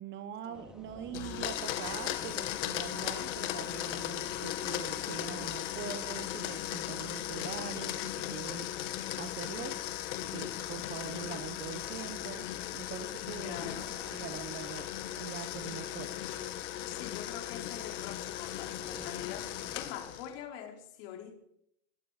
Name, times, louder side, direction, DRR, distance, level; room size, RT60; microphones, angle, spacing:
voice 1, 0.0-8.9 9.2-9.8 10.3-12.5 12.7-16.1, right 8 dB, 30° right, 1.2 m, -43 dB
sound 1, 0.5-20.1, equal, ahead, 3.2 m, -56 dB
Domestic sounds home sounds, 1.1-20.3, left 13 dB, 80° left, 2.4 m, -37 dB
voice 2, 13.4-14.0 16.8-21.3, left 10 dB, 60° left, 4.3 m, -44 dB
22.5 x 12.5 x 5.1 m
supercardioid pair, 150°, 36 cm